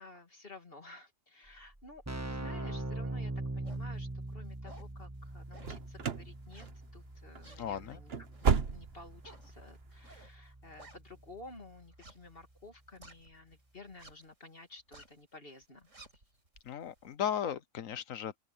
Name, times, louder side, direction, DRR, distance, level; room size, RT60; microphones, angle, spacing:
voice 1, 0.0-6.7 6.9-15.9, left 2 dB, 45° left, 2.8 m, -53 dB
Keyboard (musical), 1.5-1.6 1.7-12.4, right 2 dB, 10° right, 1.5 m, -43 dB
sound 1, 3.6-3.9 4.4-5.0 5.5-5.9 6.5-7.0 7.4-11.4 11.9-13.5 13.9-14.3 14.7-15.2 15.6-17.1, right 2 dB, 70° right, 5.7 m, -56 dB
sound 2, 5.6-6.3 6.6-7.0 7.3-7.5 7.9-9.2 9.5-9.6 10.1-10.2, right 6 dB, 50° right, 1.4 m, -32 dB
voice 2, 7.6-8.0 16.7-18.4, left 9 dB, 85° left, 1.4 m, -36 dB
open air
omnidirectional pair, 1.3 m